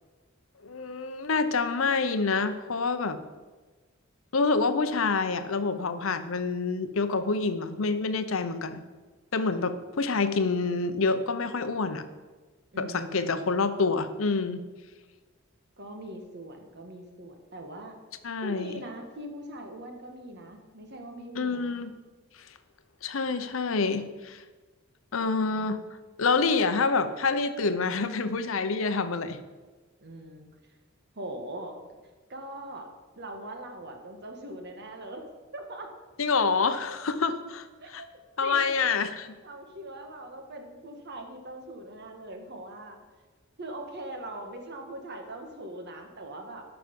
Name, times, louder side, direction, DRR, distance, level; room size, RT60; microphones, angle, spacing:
voice 1, 0.6-3.2 4.3-8.8 9.3-12.0 12.8-14.6 18.2-18.8 21.4-21.9 23.0-24.4 25.1-25.8 26.2-29.4 36.2-37.7 37.9-38.0 38.4-39.3, left 4 dB, 70° left, 11 dB, 0.7 m, -27 dB
voice 2, 12.7-13.6 15.8-18.0 18.4-21.8 25.2-25.7 30.0-30.5 31.1-31.8 32.3-32.9 33.1-35.3 35.5-35.9 37.8-38.1 38.4-38.9 39.4-43.0 43.6-46.6, right 1 dB, 55° right, 4 dB, 1.5 m, -41 dB
12.5 x 5.9 x 5.3 m, 1.3 s
head